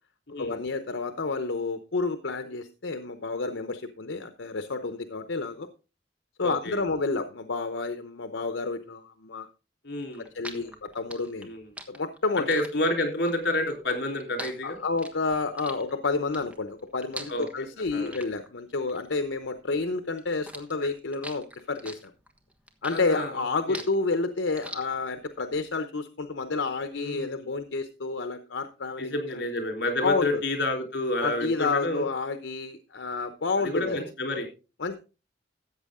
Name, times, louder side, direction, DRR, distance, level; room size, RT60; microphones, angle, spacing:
voice 1, 0.4-5.7 6.4-9.5 10.2-11.5 11.9-12.5 14.6-22.1 22.8-29.4 30.0-30.4 31.2-34.0 34.8-35.0, left 3 dB, 90° left, 9 dB, 0.8 m, -30 dB
voice 2, 6.4-6.8 9.8-10.7 11.4-11.6 12.5-14.8 17.3-18.2 22.9-23.4 23.7-23.8 26.9-27.5 29.0-32.0 33.6-34.5, left 2 dB, 65° left, 3 dB, 3.8 m, -30 dB
sound 1, 10.0-19.9 20.2-25.3, right 1 dB, 5° right, 1.3 m, -43 dB
14.0 x 8.2 x 3.7 m, 0.32 s
head